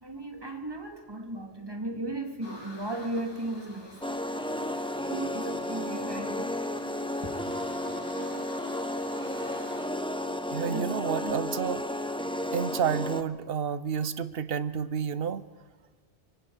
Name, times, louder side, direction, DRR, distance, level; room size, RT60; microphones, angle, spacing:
voice 1, 0.0-4.1 5.0-6.5 7.2-7.3 10.7-11.4, right 2 dB, 20° right, 5 dB, 1.9 m, -36 dB
sound 1, 2.4-9.9, left 1 dB, 85° left, 4.1 m, -48 dB
sound 2, 4.0-13.2, left 1 dB, 5° left, 0.7 m, -33 dB
voice 2, 10.5-11.9 12.5-15.4, right 7 dB, 65° right, 15 dB, 1.0 m, -30 dB
24.5 x 24.5 x 4.5 m, 1.4 s
omnidirectional pair, 1.1 m